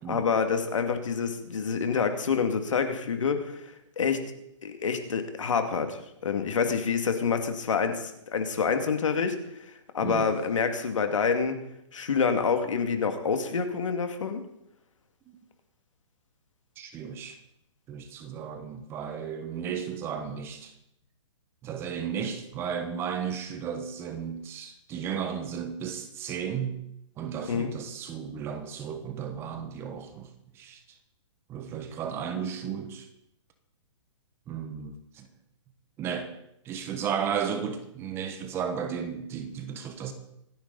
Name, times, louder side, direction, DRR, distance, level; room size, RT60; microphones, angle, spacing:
voice 1, 0.1-3.6 4.0-4.2 4.6-9.7 9.9-11.6 11.9-14.4 27.5-27.7, left 5 dB, 75° left, 7 dB, 2.4 m, -27 dB
voice 2, 10.0-10.3 16.8-17.4 17.9-20.7 21.6-26.8 27.2-30.8 31.5-33.1 34.5-35.3 36.0-36.3 36.6-40.1, right 7 dB, 15° right, 8 dB, 1.1 m, -34 dB
26.0 x 10.5 x 4.1 m, 0.79 s
hypercardioid pair, 160°, 16 cm